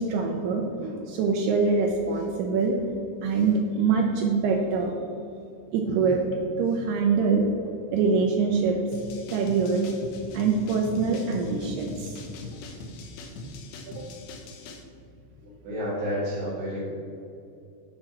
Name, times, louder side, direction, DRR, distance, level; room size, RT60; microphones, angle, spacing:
voice 1, 0.0-2.8 3.2-5.0 5.7-6.2 6.6-7.5 7.9-8.8 9.3-9.9 10.3-12.2 13.4-13.5 13.9-14.0, right 4 dB, 85° right, 1 dB, 2.3 m, -24 dB
sound 1, 8.9-14.8, left 3 dB, 85° left, 2.1 m, -41 dB
voice 2, 15.6-16.8, equal, 70° right, -7 dB, 3.4 m, -30 dB
8.5 x 4.3 x 6.1 m, 2.7 s
omnidirectional pair, 5.3 m